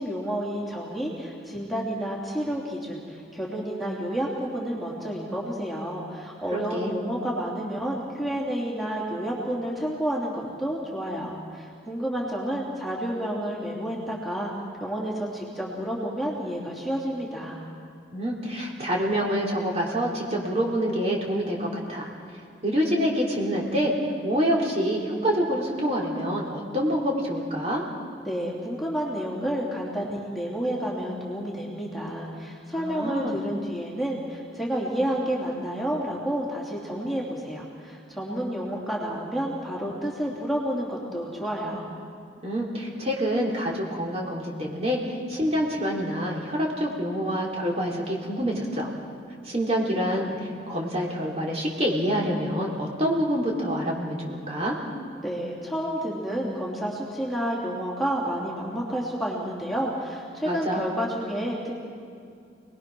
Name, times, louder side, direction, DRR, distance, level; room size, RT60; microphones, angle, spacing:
voice 1, 0.0-14.5 14.8-17.6 28.2-41.9 55.2-61.8, equal, ahead, -4 dB, 3.2 m, -30 dB
voice 2, 6.5-6.9 18.1-22.1 22.6-23.9 24.2-27.8 32.8-33.4 42.4-48.9 49.5-50.4 50.7-54.8 60.4-61.0, equal, 35° right, -2 dB, 3.6 m, -26 dB
28.0 x 20.5 x 6.3 m, 2.4 s
head